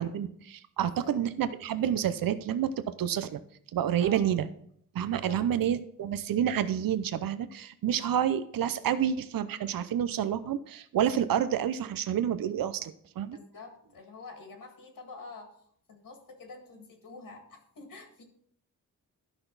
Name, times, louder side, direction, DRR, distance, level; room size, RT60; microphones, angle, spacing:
voice 1, 0.0-3.4 3.7-4.5 4.9-13.4, right 9 dB, 75° right, 12 dB, 0.6 m, -29 dB
voice 2, 0.8-1.1 4.0-4.3 5.3-5.4 13.3-15.5 15.9-18.2, left 3 dB, 70° left, 3 dB, 1.9 m, -47 dB
13.0 x 5.9 x 4.0 m, 0.64 s
wide cardioid pair, 130°, 35 cm